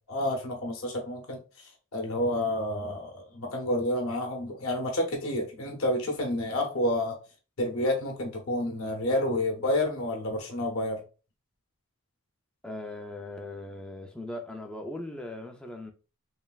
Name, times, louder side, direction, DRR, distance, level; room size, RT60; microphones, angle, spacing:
voice 1, 0.0-7.2 7.6-11.0, left 1 dB, 65° left, 0.7 m, -29 dB
voice 2, 12.6-15.9, left 1 dB, 5° left, 0.3 m, -39 dB
3.1 x 2.3 x 2.3 m
head